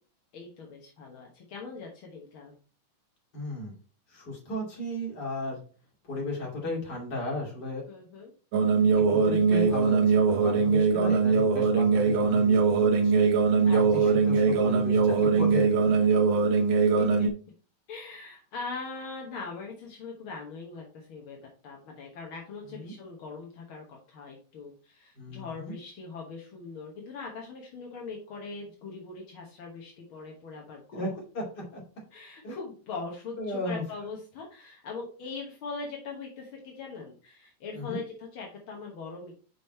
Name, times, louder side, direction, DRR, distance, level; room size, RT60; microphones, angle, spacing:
voice 1, 0.3-2.5 7.9-8.3 13.6-13.8 14.0-14.2 16.7-17.3 17.9-21.4 21.6-31.1 32.1-39.3, left 4 dB, 60° left, 0 dB, 1.4 m, -41 dB
voice 2, 3.3-3.7 4.1-5.6 6.0-7.8 9.1-13.2 13.7-15.9 22.7-22.9 25.2-25.8 30.9-31.1 31.3-31.4 31.7-31.8 32.4-32.6 33.4-33.8 37.7-38.0, left 1 dB, 30° left, -3 dB, 2.7 m, -35 dB
sound 1, 8.5-17.3, right 5 dB, 65° right, 1.8 m, -22 dB
6.2 x 5.2 x 4.3 m, 0.38 s
omnidirectional pair, 3.9 m